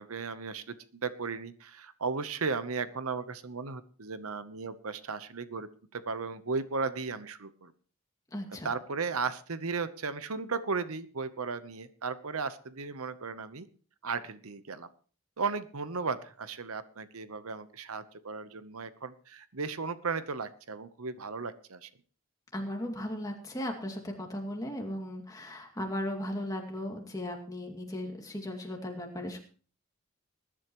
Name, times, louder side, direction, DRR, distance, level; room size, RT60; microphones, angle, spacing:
voice 1, 0.0-7.7 8.6-13.7 14.0-14.9 15.4-21.9, right 4 dB, 75° right, 13 dB, 0.9 m, -35 dB
voice 2, 8.3-8.7 22.5-29.4, left 1 dB, 15° left, 2 dB, 2.4 m, -36 dB
20.5 x 11.5 x 3.1 m, 0.40 s
head